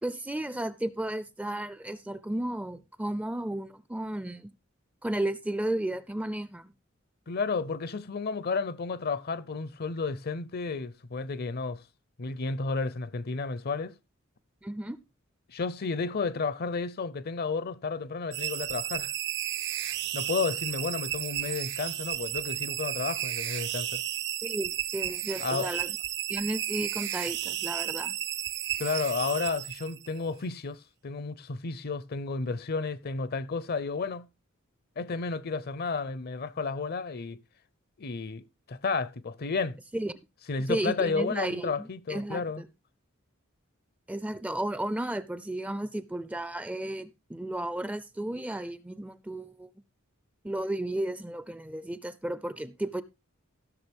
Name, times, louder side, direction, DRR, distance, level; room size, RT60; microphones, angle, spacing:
voice 1, 0.0-4.5 5.0-6.7 14.6-15.0 24.4-25.9 26.3-28.1 39.9-40.1 40.7-42.7 44.1-49.7 50.4-53.0, right 1 dB, 5° right, 0.4 m, -33 dB
voice 2, 7.3-11.8 12.2-14.0 15.5-19.1 20.1-24.0 25.4-25.7 28.8-34.3 35.0-37.4 38.0-39.8 40.5-42.6, left 4 dB, 50° left, 0.6 m, -32 dB
sound 1, 18.3-30.2, right 12 dB, 60° right, 0.6 m, -33 dB
15.5 x 6.4 x 3.4 m
head